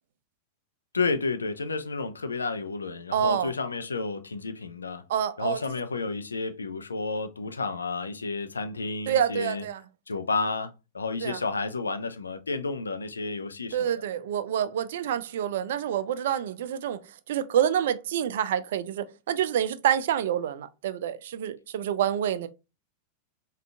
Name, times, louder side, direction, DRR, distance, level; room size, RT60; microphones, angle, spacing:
voice 1, 0.9-5.0 5.4-9.6 10.1-13.9, left 4 dB, 75° left, 0.4 m, -31 dB
voice 2, 3.1-3.5 5.1-5.6 9.1-9.8 11.2-11.4 13.7-17.0 17.3-22.5, right 9 dB, 60° right, 0.3 m, -27 dB
4.9 x 2.4 x 2.2 m
figure-of-eight pair, 90°, 0 cm